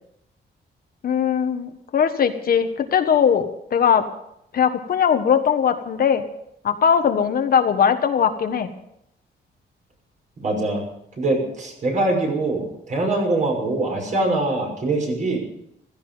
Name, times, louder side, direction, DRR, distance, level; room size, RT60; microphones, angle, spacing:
voice 1, 1.0-4.0 4.5-6.2 6.6-8.7, left 7 dB, 55° left, 7 dB, 1.4 m, -20 dB
voice 2, 10.4-10.8 11.2-15.4, right 2 dB, 40° right, 1 dB, 6.1 m, -23 dB
16.0 x 15.0 x 5.5 m, 0.76 s
wide cardioid pair, 165°, 19 cm